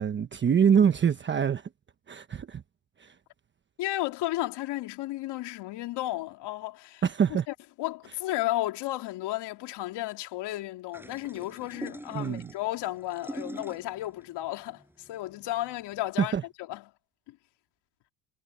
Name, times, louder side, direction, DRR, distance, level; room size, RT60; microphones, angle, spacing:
voice 1, 0.0-1.7 2.1-2.6 3.0-3.1 7.0-7.5 12.1-12.5 16.2-16.4, right 7 dB, 20° right, 1.1 m, -24 dB
voice 2, 3.8-7.0 7.5-16.8 17.3-17.4, left 16 dB, 55° left, 2.8 m, -33 dB
sound 1, 10.9-16.2, right 1 dB, 5° right, 7.6 m, -43 dB
supercardioid pair, 120°, 50 cm